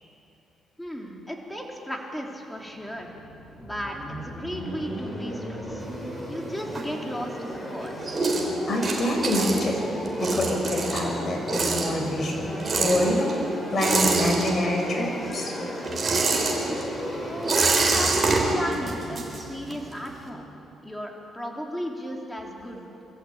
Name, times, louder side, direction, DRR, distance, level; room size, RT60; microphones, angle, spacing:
voice 1, 0.8-3.1 3.6-5.8 6.3-8.2 17.2-20.5 20.8-22.9, equal, 5° left, 0 dB, 3.4 m, -35 dB
sound 1, 2.6-20.5, equal, 20° left, 5.2 m, -36 dB
sound 2, 5.8-7.4 7.7-15.0 15.2-19.9, right 3 dB, 35° right, 4.3 m, -26 dB
voice 2, 8.7-13.3 13.7-15.5, left 1 dB, 40° left, 0 dB, 5.8 m, -26 dB
24.0 x 14.5 x 8.8 m, 2.9 s
cardioid pair, 90°, 0 cm